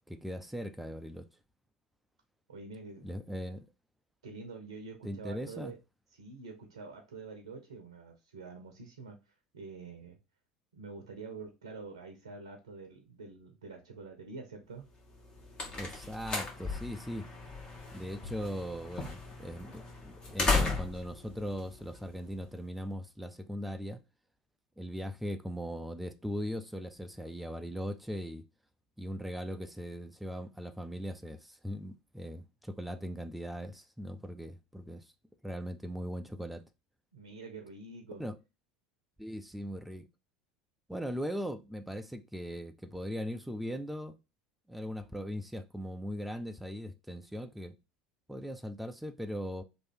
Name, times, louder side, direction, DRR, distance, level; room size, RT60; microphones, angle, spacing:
voice 1, 0.1-1.3 3.0-3.7 5.0-5.7 15.8-17.2 17.9-24.0 24.8-28.4 29.0-35.1 35.4-36.6 38.2-38.3 39.2-40.0 40.9-44.2 44.7-47.7 48.3-49.6, equal, 5° right, 0.5 m, -39 dB
voice 2, 2.5-3.1 4.2-5.8 6.2-10.2 10.7-14.9 37.1-38.2, right 4 dB, 75° right, 0.7 m, -46 dB
sound 1, 15.1-22.5, left 3 dB, 30° left, 1.1 m, -36 dB
3.1 x 2.6 x 4.5 m
figure-of-eight pair, 70°, 3 cm